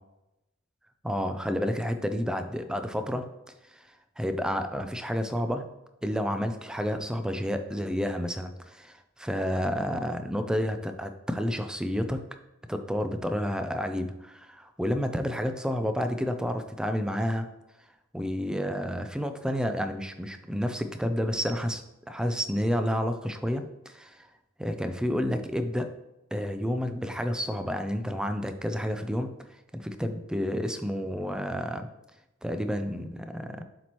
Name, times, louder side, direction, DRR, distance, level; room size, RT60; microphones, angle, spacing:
voice 1, 1.0-3.3 3.7-3.8 4.2-5.7 6.0-12.2 12.7-17.5 18.1-21.8 22.1-24.3 24.6-25.9 26.3-29.3 29.7-31.9 32.4-33.6, equal, 5° right, 8 dB, 0.4 m, -30 dB
7.3 x 4.4 x 3.0 m, 0.93 s
head